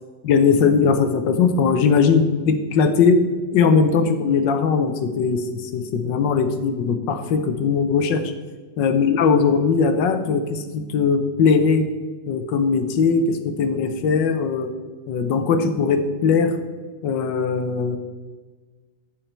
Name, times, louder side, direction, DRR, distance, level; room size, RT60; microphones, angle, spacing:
voice 1, 0.2-3.3 3.5-8.3 8.8-11.9 12.3-14.7 15.1-16.6 17.0-18.0, left 5 dB, 80° left, 8 dB, 1.5 m, -19 dB
14.5 x 5.7 x 4.4 m, 1.3 s
omnidirectional pair, 2.0 m